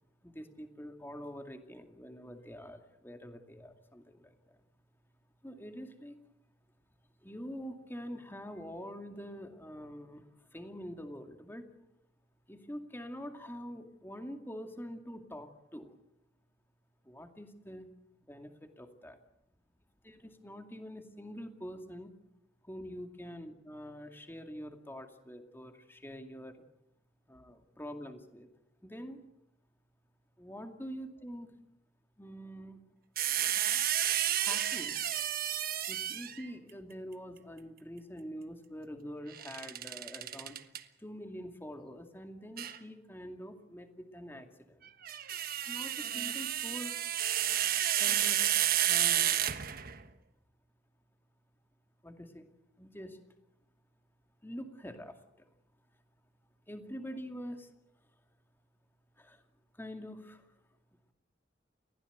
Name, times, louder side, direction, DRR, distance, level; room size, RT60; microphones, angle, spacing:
voice 1, 0.2-4.6 5.4-6.2 7.2-11.6 12.5-16.0 17.0-17.9 18.3-19.1 20.0-22.1 22.6-26.6 27.3-28.5 28.8-29.2 30.4-31.5 32.2-32.9 34.3-35.0 35.9-40.6 41.0-44.9 45.7-47.0 48.0-48.5 48.9-49.4 52.0-52.5 52.8-53.2 54.4-55.5 56.7-57.7 59.2-59.4 59.7-60.5, equal, 10° left, 5 dB, 2.3 m, -45 dB
sound 1, 33.2-36.5 39.3-40.8 42.6-42.8 44.9-50.0, right 11 dB, 50° right, 1.3 m, -31 dB
29.5 x 16.0 x 8.1 m, 0.85 s
head